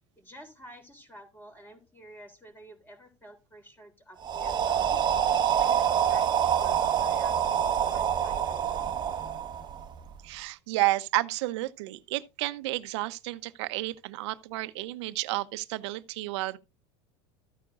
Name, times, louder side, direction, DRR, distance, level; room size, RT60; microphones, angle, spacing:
voice 1, 0.2-5.0 5.5-8.8, equal, 15° left, 3.6 m, -50 dB
sound 1, 4.2-10.1, right 9 dB, 30° right, 1.0 m, -26 dB
voice 2, 10.2-16.6, right 19 dB, 75° right, 0.8 m, -31 dB
14.0 x 9.4 x 2.5 m
supercardioid pair, 120°, 15 cm